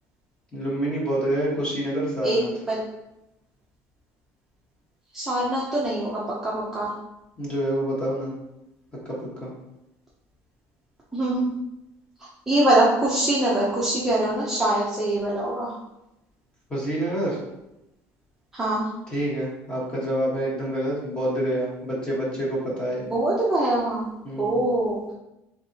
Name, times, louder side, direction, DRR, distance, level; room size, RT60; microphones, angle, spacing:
voice 1, 0.5-2.5 7.4-8.3 9.0-9.5 16.7-17.4 19.1-23.0 24.2-24.6, right 1 dB, 15° left, -5 dB, 1.3 m, -27 dB
voice 2, 5.1-6.9 11.1-11.5 12.2-15.7 18.5-18.9 23.0-24.1 24.4-25.0, right 1 dB, 5° right, -7 dB, 0.6 m, -23 dB
4.5 x 3.4 x 2.8 m, 0.89 s
cardioid pair, 175°, 6 cm